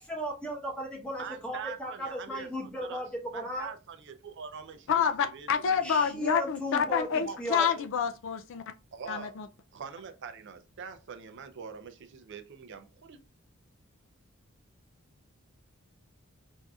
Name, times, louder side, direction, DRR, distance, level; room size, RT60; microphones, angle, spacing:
voice 1, 0.0-3.7 5.8-7.7, equal, 5° left, 1.0 m, -36 dB
voice 2, 1.2-3.0 3.3-5.0 5.3-6.0 7.1-7.9 8.9-9.3 9.7-13.2, right 6 dB, 55° right, 0.5 m, -43 dB
voice 3, 4.9-8.6 9.1-9.5, left 7 dB, 60° left, 0.4 m, -28 dB
4.6 x 2.6 x 2.3 m
head